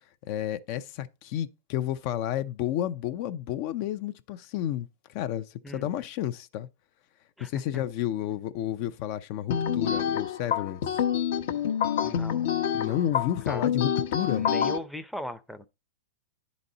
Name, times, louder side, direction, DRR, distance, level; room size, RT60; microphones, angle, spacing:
voice 1, 0.3-6.7 7.4-11.0 12.7-14.5, left 11 dB, 50° left, 0.5 m, -31 dB
sound 1, 9.5-14.8, left 8 dB, 70° left, 0.9 m, -27 dB
voice 2, 12.0-13.1 13.5-13.8 14.4-15.7, left 1 dB, ahead, 0.6 m, -39 dB
9.7 x 4.1 x 3.8 m
hypercardioid pair, 130°, 0 cm